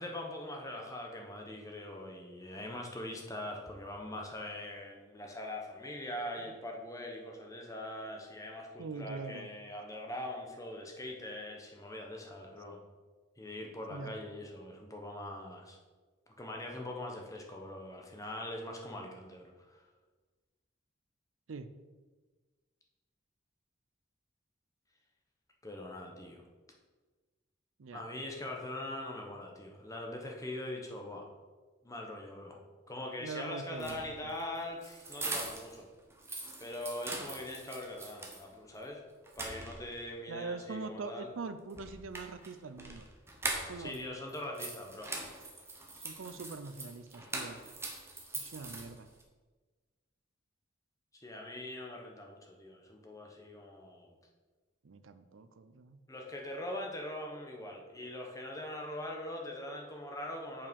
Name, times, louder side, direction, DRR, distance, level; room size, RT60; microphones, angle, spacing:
voice 1, 0.0-12.8 13.4-15.8 16.4-19.8 25.6-26.4 27.9-31.2 31.8-32.6 32.9-35.9 36.6-39.0 39.4-41.3 43.8-45.1 51.2-54.1 56.1-60.7, left 1 dB, 15° left, 1 dB, 1.1 m, -42 dB
voice 2, 8.8-9.5 13.9-14.1 21.5-21.8 27.8-28.1 33.2-34.3 40.3-43.1 43.7-44.1 46.0-47.6 48.3-49.1 54.8-56.0, right 4 dB, 80° right, 11 dB, 0.5 m, -43 dB
sound 1, 33.7-35.8 36.1-38.4 38.8-38.9 39.3-40.1 41.7-44.0 44.3-49.2, right 2 dB, 15° right, 1.0 m, -42 dB
6.9 x 5.6 x 5.3 m, 1.3 s
head